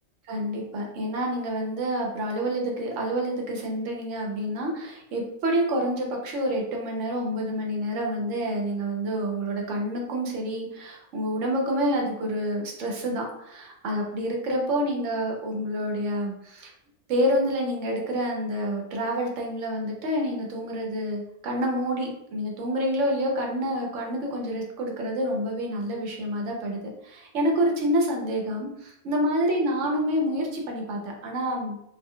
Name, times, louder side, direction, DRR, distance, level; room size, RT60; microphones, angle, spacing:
voice 1, 0.3-16.7 17.1-31.8, equal, 75° right, 0 dB, 1.0 m, -28 dB
2.6 x 2.1 x 3.6 m, 0.77 s
omnidirectional pair, 1.3 m